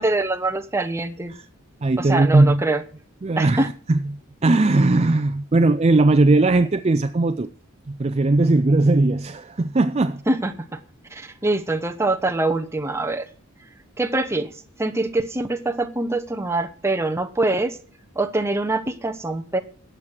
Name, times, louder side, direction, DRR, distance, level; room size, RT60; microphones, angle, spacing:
voice 1, 0.0-1.3 2.0-2.8 3.4-3.7 10.3-10.8 11.1-13.3 14.0-14.5 14.8-17.8 18.1-19.6, right 2 dB, 10° right, 0.9 m, -24 dB
voice 2, 1.8-2.6 3.2-4.0 4.4-7.5 7.9-10.2, right 2 dB, 30° right, 0.4 m, -18 dB
13.0 x 8.2 x 6.0 m
head